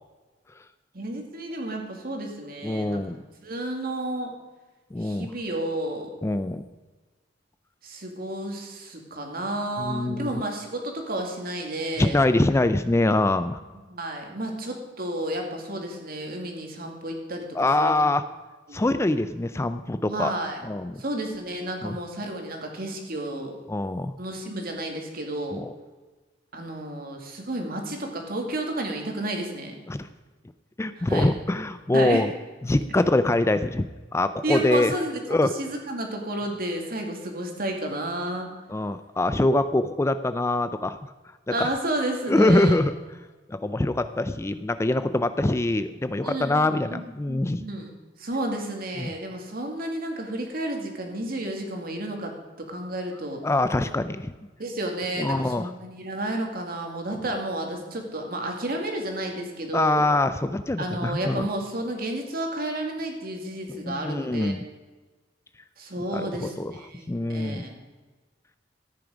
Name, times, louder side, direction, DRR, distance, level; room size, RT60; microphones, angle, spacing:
voice 1, 0.9-3.0 3.4-4.3 5.0-6.1 7.8-12.2 13.9-17.9 18.7-18.9 20.1-20.6 21.0-23.5 24.2-25.6 26.5-29.8 31.0-31.3 31.9-32.2 34.4-38.5 41.5-42.8 46.2-47.9 48.2-53.4 54.6-60.0 60.8-64.5 65.8-67.8, right 1 dB, 55° right, 2 dB, 2.3 m, -31 dB
voice 2, 2.6-3.2 4.9-5.3 6.2-6.7 9.8-10.3 12.0-13.6 17.5-18.2 18.7-20.3 20.6-21.0 21.8-22.0 23.7-24.1 25.5-25.7 29.9-30.1 30.8-32.3 32.6-34.9 35.3-35.5 38.7-41.1 42.3-42.9 43.5-47.6 49.0-49.1 53.4-54.3 55.2-55.7 59.7-61.5 63.8-64.6 66.1-66.7 67.1-67.6, left 2 dB, 15° left, 12 dB, 0.4 m, -24 dB
14.0 x 9.5 x 5.1 m, 1.3 s
head